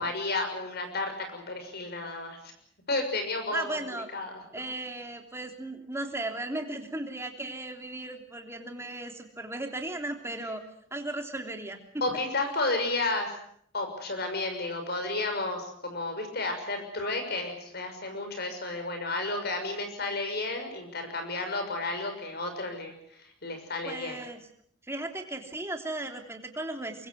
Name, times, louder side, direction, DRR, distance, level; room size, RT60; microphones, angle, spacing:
voice 1, 0.0-2.4 2.9-3.8 4.1-4.4 12.0-13.3 13.7-24.2, left 2 dB, 55° left, 6 dB, 6.2 m, -32 dB
voice 2, 3.5-4.1 4.5-10.6 10.9-11.8 23.8-24.4 24.8-27.1, right 2 dB, 15° right, 4 dB, 3.3 m, -36 dB
24.0 x 23.5 x 7.9 m, 0.67 s
head